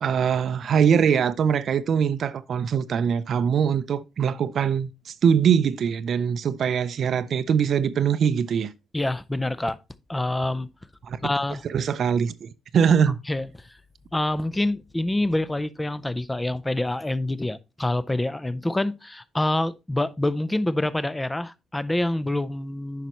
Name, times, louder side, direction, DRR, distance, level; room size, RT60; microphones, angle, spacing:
voice 1, 0.0-8.7 11.0-11.2 11.6-13.2, right 7 dB, 60° right, 0.5 m, -22 dB
voice 2, 8.9-9.8 10.1-10.7 11.2-11.6 13.3-13.8 14.1-23.1, left 1 dB, 10° left, 0.5 m, -26 dB
9.2 x 5.6 x 3.0 m
cardioid pair, 105°, 0 cm